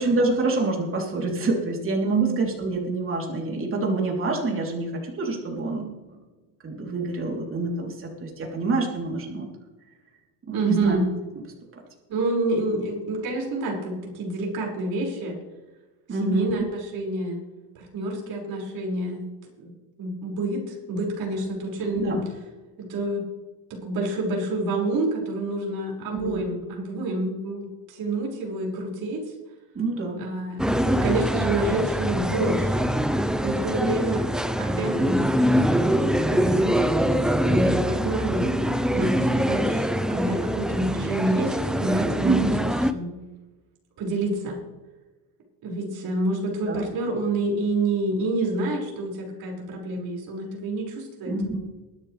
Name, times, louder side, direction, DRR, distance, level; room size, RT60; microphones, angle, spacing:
voice 1, 0.0-6.2 6.6-9.5 10.5-11.0 16.1-16.7 21.9-22.2 26.1-26.5 29.7-30.2 42.2-42.6 46.7-46.8 51.2-51.6, right 3 dB, 30° right, 0 dB, 3.5 m, -26 dB
voice 2, 10.5-11.1 12.1-15.4 16.1-17.4 17.7-19.2 19.6-19.7 20.0-22.2 22.8-23.2 23.7-29.3 30.2-32.8 33.4-34.3 34.6-35.2 35.7-37.2 37.5-38.6 38.9-42.5 42.9-43.1 44.0-44.6 45.6-51.3, right 2 dB, 55° right, -2 dB, 5.9 m, -28 dB
sound 1, 30.6-42.9, equal, ahead, 0.5 m, -24 dB
22.5 x 10.0 x 3.4 m, 1.2 s
cardioid pair, 135°, 44 cm